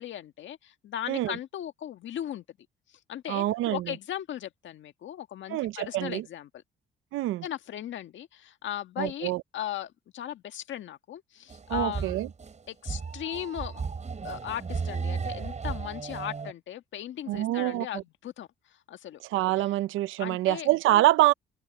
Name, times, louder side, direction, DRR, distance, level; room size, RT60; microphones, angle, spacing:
voice 1, 0.0-2.4 3.1-6.6 7.4-12.2 12.7-13.8 14.2-19.2 19.6-19.7 20.2-20.7, left 11 dB, 70° left, 1.7 m, -37 dB
voice 2, 3.3-3.9 5.5-6.2 7.1-7.4 9.0-9.4 11.7-12.3 17.3-17.9 19.3-21.3, right 16 dB, 90° right, 0.7 m, -25 dB
sound 1, 11.5-16.5, right 5 dB, 35° right, 4.2 m, -34 dB
cardioid pair, 90°, 20 cm